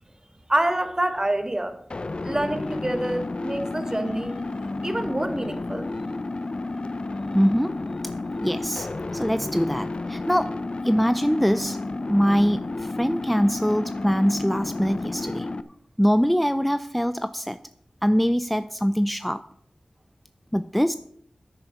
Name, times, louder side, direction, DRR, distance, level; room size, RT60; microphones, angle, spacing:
voice 1, 0.5-1.8 2.2-4.4 4.8-5.9, right 1 dB, 25° right, 8 dB, 1.6 m, -26 dB
sound 1, 1.9-15.6, left 2 dB, 50° left, 0.6 m, -31 dB
voice 2, 7.3-7.7 8.4-8.9 9.1-11.8 12.1-15.5 16.0-17.6 18.0-19.4 20.5-21.0, equal, ahead, 12 dB, 0.4 m, -23 dB
9.7 x 9.6 x 5.8 m, 0.68 s
cardioid pair, 50°, 2 cm